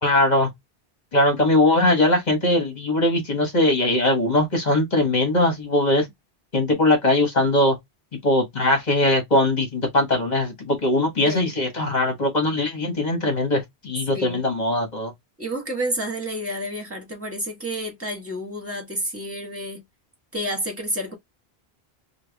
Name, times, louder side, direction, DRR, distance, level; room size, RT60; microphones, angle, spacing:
voice 1, 0.0-0.5 1.1-6.1 6.5-7.8 8.1-15.1, left 1 dB, 45° left, 1.5 m, -20 dB
voice 2, 15.4-19.8 20.3-21.1, equal, 15° right, 1.4 m, -30 dB
4.5 x 2.3 x 3.4 m
omnidirectional pair, 1.0 m